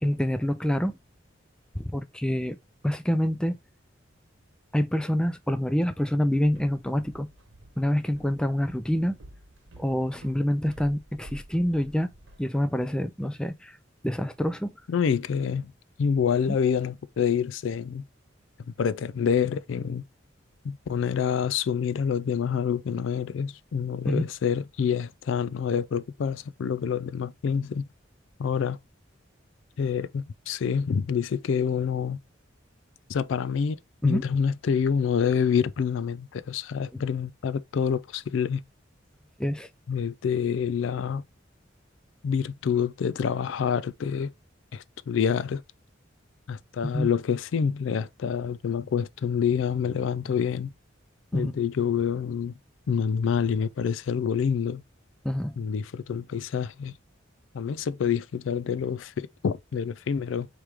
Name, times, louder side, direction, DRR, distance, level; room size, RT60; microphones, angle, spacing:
voice 1, 0.0-0.9 1.8-2.6 2.8-3.6 4.7-7.3 7.8-9.1 9.8-12.1 12.4-13.8 14.0-14.7 16.5-16.6 24.0-24.3 34.0-34.2 36.9-37.0 39.4-39.7 46.8-47.1 51.3-51.5 55.2-55.6, equal, 5° left, 0.4 m, -26 dB
Walk footsteps, 6.3-12.4, right 1 dB, 85° right, 1.1 m, -51 dB
voice 2, 14.9-15.7 16.0-18.0 18.7-20.1 20.6-27.8 28.4-28.8 29.8-32.2 33.1-33.8 34.0-38.6 39.9-41.2 42.2-44.3 44.7-45.6 46.5-50.7 51.3-52.6 52.9-54.8 55.6-56.9 57.5-60.5, left 7 dB, 80° left, 0.4 m, -27 dB
4.8 x 3.1 x 3.3 m
head